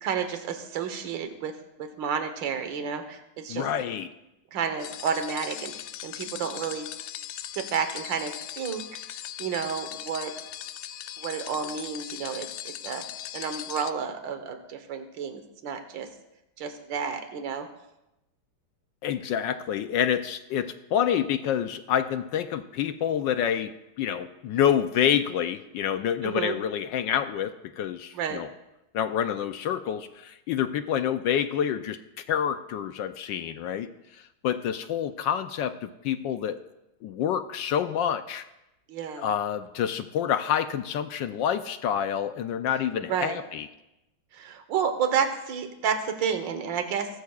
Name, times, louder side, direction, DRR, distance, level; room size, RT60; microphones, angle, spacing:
voice 1, 0.0-1.5 1.8-3.7 4.5-6.9 7.6-8.8 9.4-10.3 11.2-12.5 12.8-13.0 13.3-16.1 16.6-17.7 26.2-26.6 28.1-28.4 38.9-39.3 43.1-43.4 44.3-47.1, right 7 dB, 65° right, 7 dB, 1.8 m, -30 dB
voice 2, 3.5-4.1 19.0-23.7 24.0-28.5 28.9-32.0 32.3-33.9 34.4-36.6 37.0-38.4 39.2-43.7, left 9 dB, 75° left, 10 dB, 1.2 m, -27 dB
sound 1, 4.8-13.9, left 11 dB, 90° left, 1.5 m, -39 dB
19.0 x 13.0 x 2.4 m, 0.91 s
omnidirectional pair, 2.3 m